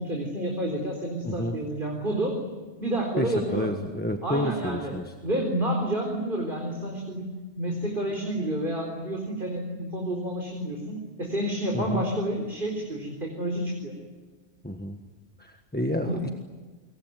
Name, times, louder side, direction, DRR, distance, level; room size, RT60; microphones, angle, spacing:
voice 1, 0.0-2.4 2.8-3.7 4.2-4.9 5.2-7.3 7.6-14.0 16.0-16.2, right 1 dB, 50° right, 1 dB, 4.3 m, -29 dB
voice 2, 1.2-1.6 3.2-5.1 11.7-12.0 14.6-15.0 15.4-16.3, left 1 dB, 10° left, 5 dB, 1.4 m, -29 dB
27.0 x 23.0 x 9.3 m, 1.3 s
omnidirectional pair, 1.1 m